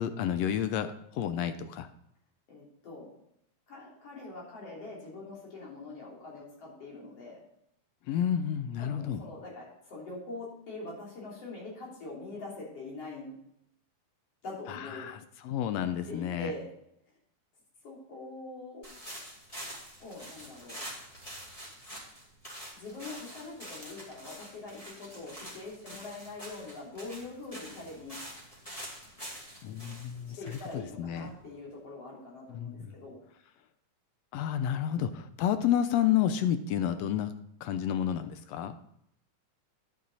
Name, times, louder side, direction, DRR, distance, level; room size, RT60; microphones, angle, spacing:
voice 1, 0.0-1.9 8.1-9.2 14.7-16.5 29.6-31.3 32.5-32.9 34.3-37.3 37.6-38.8, left 10 dB, 75° left, 10 dB, 1.6 m, -30 dB
voice 2, 2.5-3.1 3.7-7.4 8.8-13.4 14.4-15.1 16.1-16.7 17.8-18.9 20.0-20.8 22.7-28.2 30.4-33.2, left 2 dB, 50° left, -4 dB, 4.3 m, -43 dB
sound 1, 18.8-31.6, equal, 15° left, 2.0 m, -46 dB
10.5 x 8.7 x 4.1 m, 0.75 s
omnidirectional pair, 3.5 m